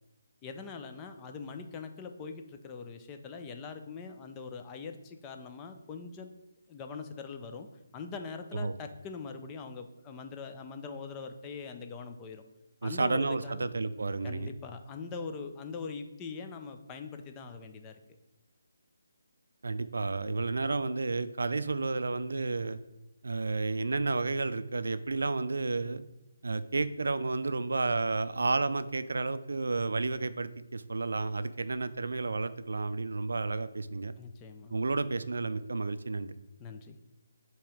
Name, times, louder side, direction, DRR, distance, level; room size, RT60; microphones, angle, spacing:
voice 1, 0.4-6.3 6.7-7.7 7.9-12.4 12.8-13.7 14.2-18.0 34.2-34.8 36.6-37.0, left 5 dB, 15° left, 6 dB, 0.5 m, -42 dB
voice 2, 12.8-14.5 19.6-22.8 23.2-26.0 26.4-34.1 34.7-36.3, right 3 dB, 75° right, 13 dB, 0.4 m, -31 dB
7.1 x 3.0 x 4.9 m, 0.94 s
figure-of-eight pair, 160°, 0 cm